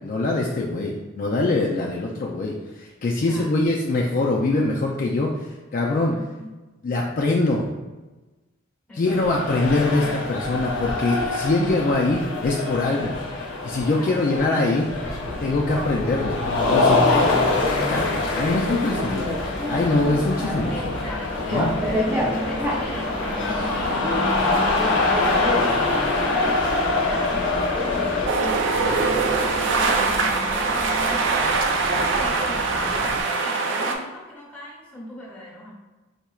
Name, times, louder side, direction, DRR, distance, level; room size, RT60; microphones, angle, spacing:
voice 1, 0.0-6.1 6.8-7.7 9.0-13.2 13.6-14.9 15.4-16.4 16.7-17.3 17.8-19.4 19.7-20.9 21.5-21.7 29.0-29.1, left 2 dB, 45° left, -2 dB, 0.4 m, -23 dB
voice 2, 3.2-3.7 6.1-6.5 8.9-9.3 14.0-14.6 20.7-31.8 32.2-35.7, left 1 dB, 5° left, -5 dB, 1.0 m, -39 dB
sound 1, 9.1-28.3, left 3 dB, 80° left, 0.7 m, -25 dB
Bicycle, 15.0-33.2, equal, 10° right, 0.5 m, -31 dB
sound 2, 28.3-33.9, right 3 dB, 65° right, 0.4 m, -22 dB
4.3 x 2.8 x 2.3 m, 1.2 s
head